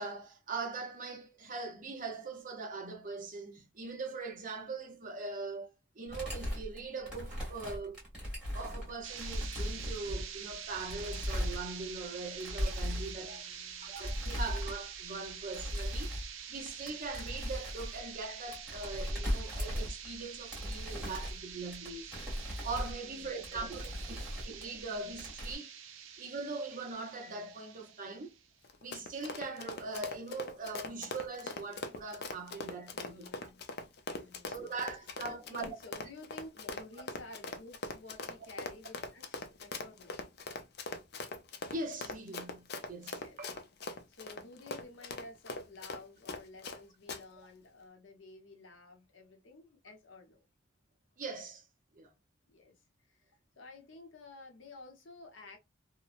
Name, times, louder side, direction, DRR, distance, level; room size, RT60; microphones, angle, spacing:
voice 1, 0.0-8.0 8.5-13.4 13.8-16.2 16.5-22.1 22.6-25.7 26.2-28.3 28.8-33.5 34.5-35.7 41.7-43.5 51.2-51.6 51.9-52.1, right 3 dB, 45° right, 0.7 m, -41 dB
sound 1, 6.1-12.1 12.4-13.2 14.0-15.0 15.2-16.4 16.7-20.2 20.5-24.8 25.1-25.6, equal, 5° right, 1.4 m, -38 dB
sound 2, 9.0-28.5, right 8 dB, 90° right, 0.5 m, -46 dB
voice 2, 12.8-14.0 22.9-24.2 32.9-33.6 34.2-40.2 43.1-43.4 43.9-50.4 52.5-52.7 53.1-55.6, left 2 dB, 80° left, 0.9 m, -53 dB
Run, 28.6-46.8 47.1-47.2, left 3 dB, 55° left, 0.5 m, -41 dB
2.9 x 2.1 x 2.4 m
head